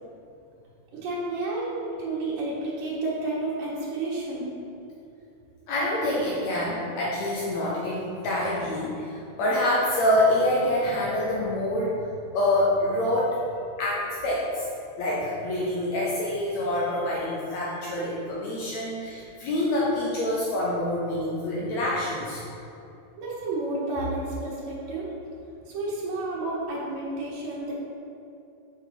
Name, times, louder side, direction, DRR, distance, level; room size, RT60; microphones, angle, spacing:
voice 1, 0.9-4.6 17.8-17.9 23.2-25.1 25.7-27.7, right 2 dB, 80° right, -7 dB, 2.7 m, -31 dB
voice 2, 5.7-12.1 12.3-13.4 13.8-14.7 15.0-22.5, left 1 dB, 75° left, -5 dB, 1.7 m, -26 dB
6.6 x 5.1 x 3.8 m, 2.7 s
omnidirectional pair, 3.9 m